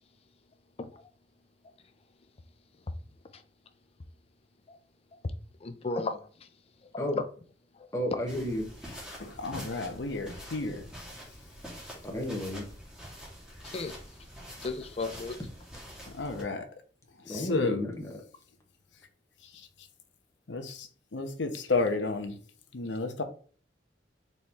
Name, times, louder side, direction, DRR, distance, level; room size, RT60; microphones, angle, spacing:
voice 1, 5.6-6.3 6.9-7.2 13.6-13.9 14.6-15.4, left 3 dB, 35° left, 0.4 m, -34 dB
voice 2, 7.9-8.7 12.0-12.7 17.2-18.2, left 1 dB, 15° left, 1.0 m, -32 dB
sound 1, 8.3-16.4, equal, 5° right, 1.5 m, -46 dB
voice 3, 9.2-10.9 16.1-16.7 17.3-17.9 19.5-19.7 20.5-22.4 22.7-23.2, left 3 dB, 80° left, 0.8 m, -32 dB
4.2 x 3.1 x 3.4 m
head